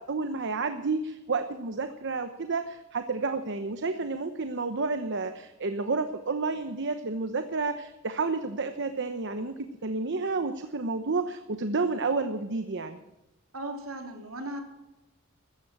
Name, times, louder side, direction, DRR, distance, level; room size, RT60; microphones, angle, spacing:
voice 1, 0.1-9.5 9.8-13.0, right 3 dB, 55° right, 9 dB, 1.0 m, -30 dB
voice 2, 13.5-14.6, right 1 dB, 75° right, 4 dB, 3.4 m, -37 dB
15.5 x 13.5 x 6.1 m, 0.96 s
head